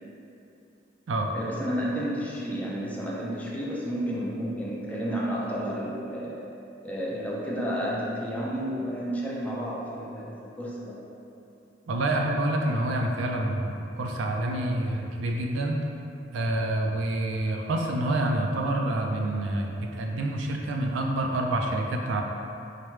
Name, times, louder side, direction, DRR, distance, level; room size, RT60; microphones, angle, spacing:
voice 1, 1.3-6.5 6.8-11.0 13.1-13.2, equal, 10° left, -5 dB, 0.5 m, -31 dB
voice 2, 11.9-15.8 16.3-22.2, right 1 dB, 75° right, 1 dB, 0.4 m, -27 dB
4.8 x 2.1 x 3.0 m, 2.8 s
head